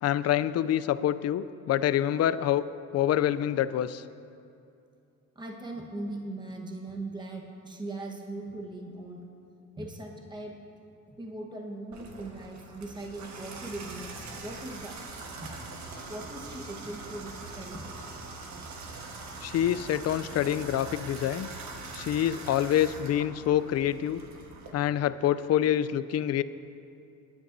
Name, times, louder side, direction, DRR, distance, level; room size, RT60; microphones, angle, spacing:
voice 1, 0.0-2.6 2.9-4.0 19.4-21.5 21.9-24.2 24.7-26.4, left 11 dB, 55° left, 15 dB, 0.4 m, -26 dB
voice 2, 5.3-9.2 9.8-10.5 11.1-15.0 15.4-15.5 16.1-17.9, right 2 dB, 15° right, 0 dB, 1.2 m, -39 dB
Water tap faucet / Bathtub (filling or washing), 11.9-24.7, right 3 dB, 65° right, 1.4 m, -42 dB
19.0 x 9.5 x 2.7 m, 2.6 s
cardioid pair, 90°, 30 cm